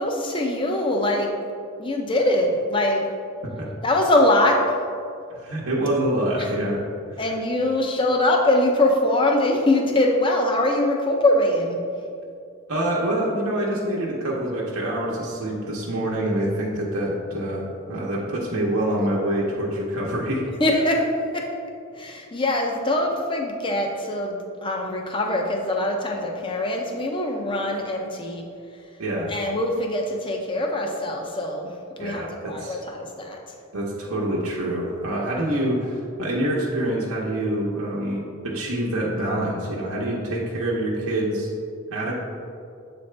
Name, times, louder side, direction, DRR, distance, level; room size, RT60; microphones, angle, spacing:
voice 1, 0.0-1.3 1.8-3.0 3.8-4.6 7.2-11.8 20.6-21.4 22.0-28.4 29.3-31.7 32.0-32.2 32.5-33.4, left 1 dB, 20° left, 1 dB, 0.5 m, -22 dB
voice 2, 5.3-6.8 7.1-7.3 12.7-20.5 29.0-29.3 32.0-32.8 33.7-41.5 41.9-42.2, right 1 dB, 85° right, -4 dB, 0.8 m, -26 dB
7.5 x 4.2 x 3.3 m, 2.4 s
head